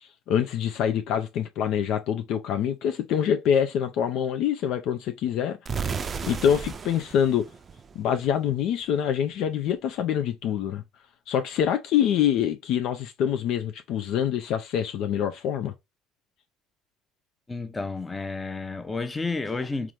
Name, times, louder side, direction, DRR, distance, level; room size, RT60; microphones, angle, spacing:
voice 1, 0.0-5.6 6.0-7.5 7.9-10.8 11.3-15.7, left 9 dB, 60° left, 0.5 m, -25 dB
sound 1, 5.7-8.5, right 6 dB, 35° right, 0.5 m, -34 dB
voice 2, 17.5-19.9, left 3 dB, 20° left, 0.8 m, -31 dB
3.6 x 3.1 x 3.2 m
hypercardioid pair, 60°, 0 cm